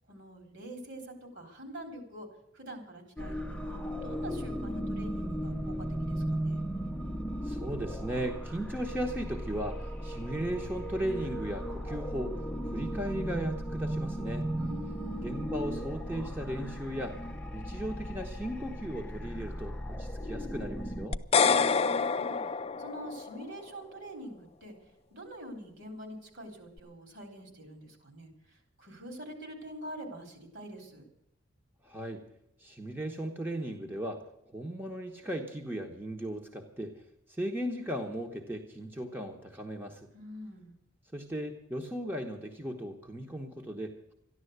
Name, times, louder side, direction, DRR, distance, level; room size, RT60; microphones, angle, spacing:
voice 1, 0.1-2.3 2.5-6.6 14.6-15.3 21.4-22.4 22.8-24.7 25.1-28.3 28.8-31.0 40.1-40.7, equal, 60° right, 4 dB, 4.0 m, -45 dB
sound 1, 3.2-21.1, equal, 5° left, 0.8 m, -36 dB
voice 2, 7.4-14.5 15.2-17.2 17.5-21.2 31.8-32.2 32.6-34.2 34.5-37.0 37.3-40.1 41.1-44.1, right 1 dB, 10° right, 2 dB, 1.1 m, -37 dB
sound 2, 21.1-23.4, left 5 dB, 30° left, 0.4 m, -27 dB
13.5 x 11.0 x 8.1 m, 0.81 s
head